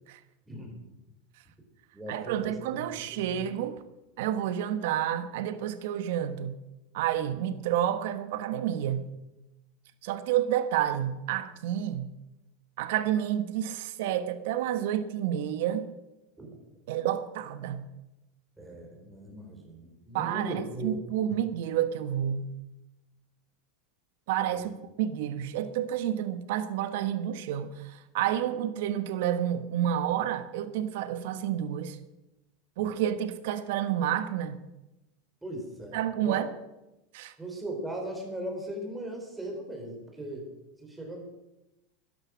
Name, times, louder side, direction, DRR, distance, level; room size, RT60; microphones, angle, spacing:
voice 1, 0.5-0.8 1.9-2.8 3.1-3.4 16.4-16.5 18.6-21.0 24.5-24.7 35.4-36.4 37.4-40.5 40.8-41.2, right 1 dB, 10° right, 1 dB, 4.1 m, -38 dB
voice 2, 2.1-3.8 4.2-6.6 6.9-9.1 10.0-12.1 12.8-15.9 16.9-17.8 20.1-22.5 24.3-32.0 32.8-34.6 35.9-36.5 37.1-37.3, right 10 dB, 70° right, 11 dB, 1.3 m, -30 dB
12.5 x 10.5 x 6.2 m, 0.96 s
supercardioid pair, 130°, 0 cm